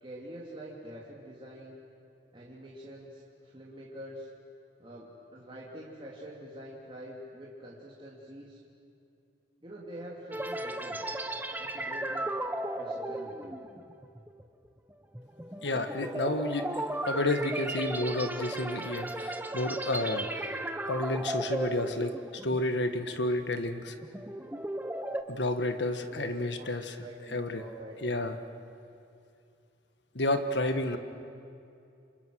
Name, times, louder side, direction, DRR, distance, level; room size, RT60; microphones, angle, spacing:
voice 1, 0.0-1.8 2.3-4.3 4.8-8.6 9.6-11.0 11.6-12.3 12.7-13.6 26.1-26.7 27.0-28.6 30.9-31.0, equal, 30° right, -5 dB, 2.9 m, -46 dB
sound 1, 10.3-22.8 23.1-23.4 23.9-25.2, right 1 dB, 10° right, 0.9 m, -35 dB
voice 2, 15.6-16.7 17.1-20.5 20.9-22.1 22.4-23.9 25.3-26.9 27.3-27.6 28.0-28.3 30.1-31.0, left 1 dB, 70° left, 8 dB, 1.5 m, -30 dB
29.5 x 26.5 x 6.4 m, 2.6 s
head